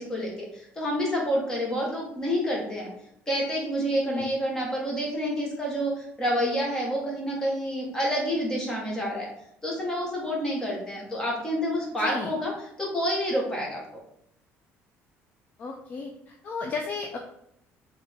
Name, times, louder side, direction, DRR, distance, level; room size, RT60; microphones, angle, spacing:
voice 1, 0.0-2.9 3.3-9.3 9.6-12.5 12.8-13.8, equal, 15° left, -3 dB, 1.1 m, -28 dB
voice 2, 12.0-12.3 15.6-17.2, left 4 dB, 35° left, 2 dB, 0.4 m, -34 dB
3.8 x 3.2 x 3.5 m, 0.74 s
cardioid pair, 180°, 5 cm